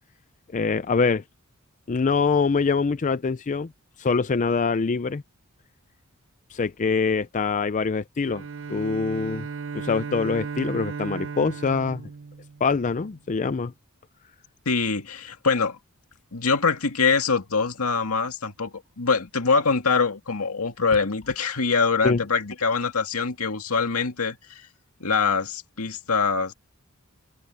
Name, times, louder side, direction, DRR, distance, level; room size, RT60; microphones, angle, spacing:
voice 1, 0.5-1.2 1.9-3.7 4.0-5.2 6.5-8.4 8.7-9.5 9.7-12.0 12.6-13.7 22.0-22.2, left 4 dB, 35° left, 0.5 m, -24 dB
Bowed string instrument, 8.2-13.1, right 5 dB, 60° right, 0.6 m, -35 dB
voice 2, 14.7-15.8 16.3-24.7 25.0-26.5, left 4 dB, 80° left, 2.1 m, -24 dB
head